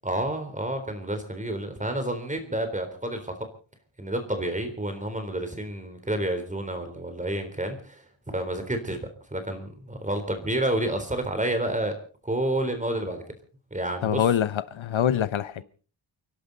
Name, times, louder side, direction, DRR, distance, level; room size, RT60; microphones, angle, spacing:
voice 1, 0.0-3.5 4.0-8.0 8.3-9.0 9.3-11.9 12.2-13.2 13.7-14.2, right 1 dB, 15° right, 3.8 m, -29 dB
voice 2, 14.0-15.6, left 9 dB, 80° left, 0.9 m, -24 dB
29.5 x 12.0 x 4.1 m
wide cardioid pair, 120°, 47 cm